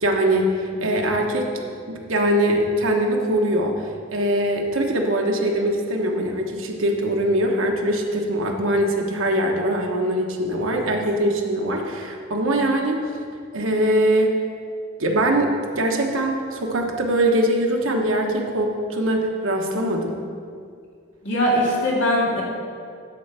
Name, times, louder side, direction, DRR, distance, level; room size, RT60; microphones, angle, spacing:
voice 1, 0.0-1.5 1.9-3.7 4.1-13.0 13.5-14.4 15.0-20.2, right 1 dB, 85° right, 1 dB, 1.2 m, -22 dB
voice 2, 21.2-22.4, equal, 60° left, -4 dB, 2.3 m, -20 dB
10.0 x 4.4 x 7.5 m, 2.2 s
head